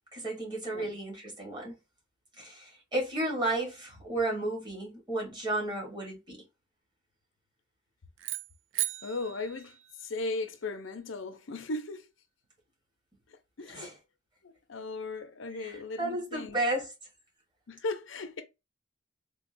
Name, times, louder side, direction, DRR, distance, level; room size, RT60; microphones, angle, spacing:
voice 1, 0.1-1.7 2.4-6.4 13.7-13.9 15.5-16.9, right 2 dB, 25° right, 1.4 m, -33 dB
sound 1, 8.2-10.5, right 15 dB, 75° right, 0.3 m, -37 dB
voice 2, 9.0-9.8 10.0-12.0 13.6-13.9 14.4-16.6 17.7-18.4, left 3 dB, 75° left, 0.6 m, -37 dB
3.6 x 2.3 x 2.5 m
head